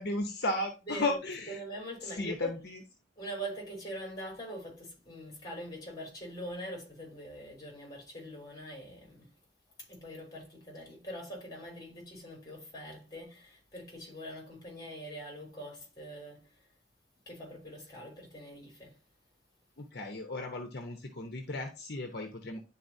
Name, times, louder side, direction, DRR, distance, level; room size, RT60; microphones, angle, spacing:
voice 1, 0.0-1.6 2.0-2.8 19.8-22.6, left 2 dB, 60° left, 1.0 m, -35 dB
voice 2, 0.9-1.2 1.5-2.6 3.2-9.3 9.8-16.6 17.2-19.0, equal, 20° left, 3.3 m, -43 dB
10.5 x 4.2 x 2.7 m
head